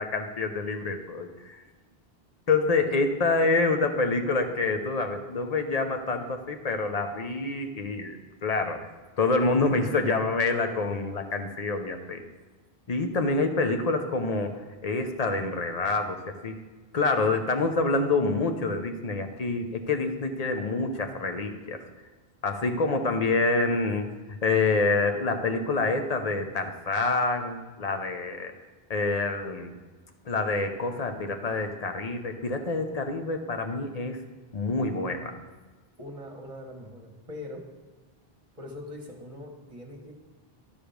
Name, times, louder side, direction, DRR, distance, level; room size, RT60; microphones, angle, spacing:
voice 1, 0.0-1.6 2.5-8.2 8.4-8.9 9.2-12.2 12.9-16.6 16.9-21.8 22.4-28.5 28.9-29.7 30.2-34.2 34.5-35.3, left 3 dB, 40° left, 6 dB, 0.8 m, -27 dB
voice 2, 36.0-37.7 38.6-40.1, left 1 dB, 35° right, 2 dB, 1.4 m, -42 dB
12.0 x 5.0 x 5.1 m, 1.3 s
omnidirectional pair, 1.1 m